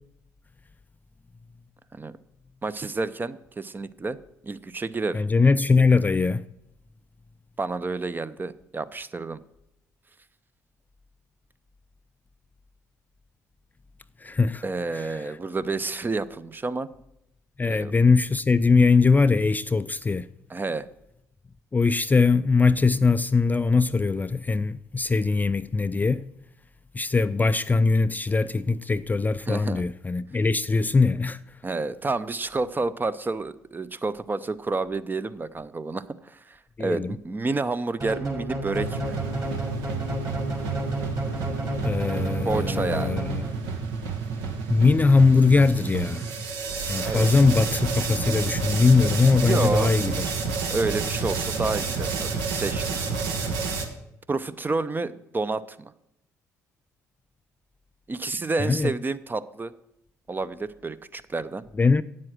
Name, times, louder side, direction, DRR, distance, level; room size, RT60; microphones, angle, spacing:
voice 1, 2.6-4.2 4.4-5.2 7.6-9.4 14.6-16.9 17.7-17.9 20.5-20.8 29.5-29.8 31.6-39.1 42.4-43.2 47.0-47.3 49.4-49.9 50.7-53.0 54.3-55.9 58.1-59.7 60.3-61.6, right 3 dB, 25° right, 0.6 m, -29 dB
voice 2, 5.1-6.4 14.2-14.6 14.9-15.1 17.6-20.3 21.7-26.3 26.9-31.4 36.8-37.1 41.8-43.5 44.7-46.3 46.9-50.2 58.6-58.9 61.8-62.0, left 4 dB, 20° left, 0.3 m, -21 dB
sound 1, 38.0-43.8, equal, 45° right, 3.7 m, -32 dB
sound 2, 38.8-53.9, right 5 dB, 75° right, 1.3 m, -30 dB
8.7 x 7.6 x 6.1 m
hypercardioid pair, 55°, 8 cm